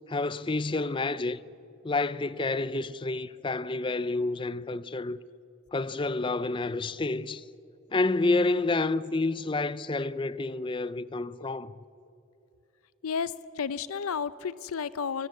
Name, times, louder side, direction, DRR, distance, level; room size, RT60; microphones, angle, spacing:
voice 1, 0.1-1.4 1.8-5.2 5.7-7.4 7.9-11.8, left 3 dB, 25° left, 0.5 m, -29 dB
voice 2, 13.0-15.3, left 6 dB, 85° left, 0.6 m, -32 dB
25.0 x 17.0 x 8.2 m
head